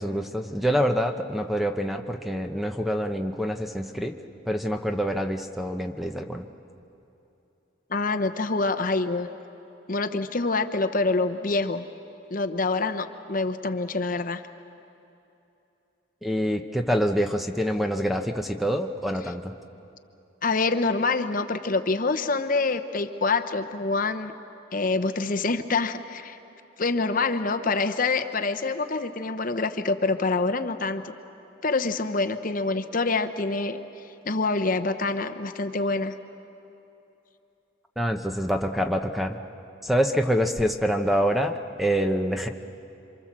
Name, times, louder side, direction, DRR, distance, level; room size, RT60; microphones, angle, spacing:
voice 1, 0.0-4.2 4.5-6.5 16.2-19.5 38.0-39.4 39.8-42.5, equal, ahead, 5 dB, 0.8 m, -26 dB
voice 2, 7.9-9.3 9.9-11.9 12.3-14.4 20.4-24.3 24.7-26.4 26.8-31.1 31.6-33.8 34.3-36.1, left 3 dB, 40° left, 9 dB, 0.9 m, -26 dB
27.5 x 25.5 x 7.5 m, 2.8 s
head